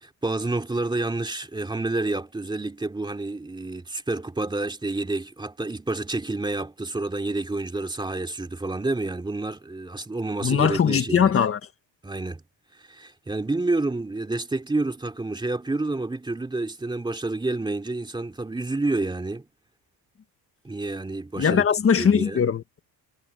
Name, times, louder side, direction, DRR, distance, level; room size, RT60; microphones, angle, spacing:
voice 1, 0.0-11.3 12.0-12.4 12.7-19.5 20.6-21.7 22.0-22.4, right 2 dB, 10° right, 3.1 m, -29 dB
voice 2, 10.4-11.6 21.4-22.8, left 7 dB, 30° left, 1.6 m, -21 dB
cardioid pair, 175°, 43 cm